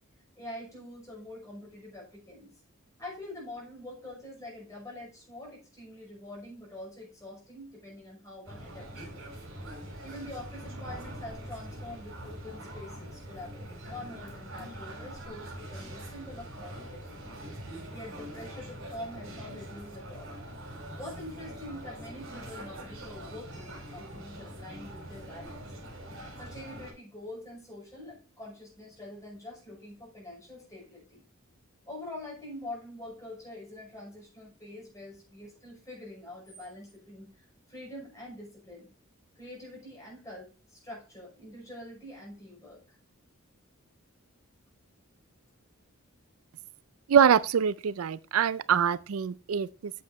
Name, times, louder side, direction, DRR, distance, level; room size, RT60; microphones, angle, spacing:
voice 1, 0.4-2.6 3.0-9.2 10.0-17.2 17.6-20.4 20.9-25.7 26.4-31.2 31.9-38.9 39.4-42.8, left 1 dB, 15° left, 5.9 m, -45 dB
sound 1, 8.4-26.9, right 1 dB, 65° right, 4.4 m, -43 dB
voice 2, 47.1-49.9, right 7 dB, 85° right, 0.4 m, -24 dB
8.5 x 7.2 x 4.3 m
head